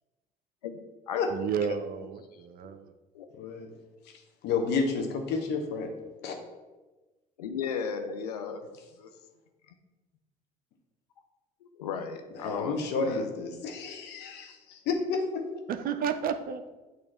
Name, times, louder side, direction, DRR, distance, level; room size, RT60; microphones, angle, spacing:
voice 1, 1.3-2.9 15.7-16.6, right 7 dB, 50° right, 9 dB, 0.6 m, -32 dB
voice 2, 3.3-3.7 4.0-5.9 6.2-6.4 12.3-15.4, left 4 dB, 60° left, 4 dB, 1.2 m, -31 dB
voice 3, 7.4-8.6 9.0-9.1 9.7-9.8 11.7-13.3, left 6 dB, 90° left, 7 dB, 0.6 m, -35 dB
8.2 x 3.1 x 4.3 m, 1.2 s
hypercardioid pair, 65°, 19 cm